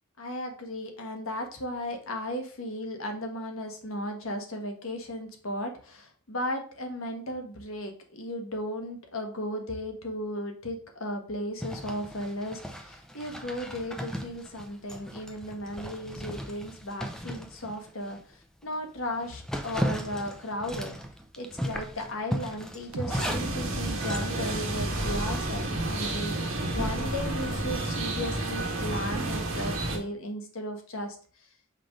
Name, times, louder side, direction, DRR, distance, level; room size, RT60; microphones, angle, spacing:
voice 1, 0.2-20.9 21.4-31.5, left 1 dB, 70° left, 4 dB, 1.2 m, -35 dB
Zipper (clothing), 11.6-18.2 18.6-18.7 19.1-25.4, equal, 5° left, 0.5 m, -37 dB
sound 1, 22.9-23.2 24.8-25.3 26.6-27.8, right 1 dB, 80° right, 0.7 m, -36 dB
sound 2, 23.1-30.0, right 2 dB, 65° right, 1.5 m, -31 dB
5.8 x 3.4 x 5.1 m, 0.43 s
head